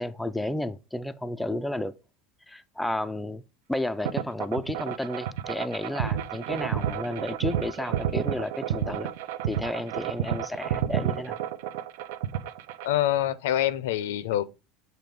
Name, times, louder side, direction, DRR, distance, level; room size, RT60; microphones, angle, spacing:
voice 1, 0.0-1.9 2.5-3.4 3.7-9.1 9.4-11.4, left 1 dB, 5° left, 0.3 m, -32 dB
sound 1, 4.0-13.0, right 10 dB, 75° right, 0.5 m, -30 dB
voice 2, 12.8-14.4, left 12 dB, 85° left, 0.6 m, -25 dB
7.8 x 2.7 x 5.1 m
supercardioid pair, 145°, 0 cm